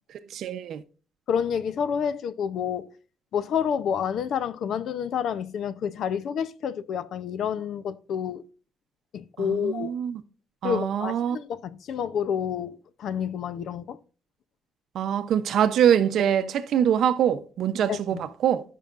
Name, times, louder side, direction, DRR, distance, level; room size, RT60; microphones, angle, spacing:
voice 1, 0.3-0.8 9.4-10.2 10.6-11.4 14.9-18.6, right 9 dB, 60° right, 0.7 m, -24 dB
voice 2, 1.3-2.9 3.3-8.4 9.1-9.9 10.6-14.0 17.9-18.2, left 8 dB, 60° left, 0.7 m, -29 dB
15.5 x 5.6 x 2.5 m
cardioid pair, 170°, 0 cm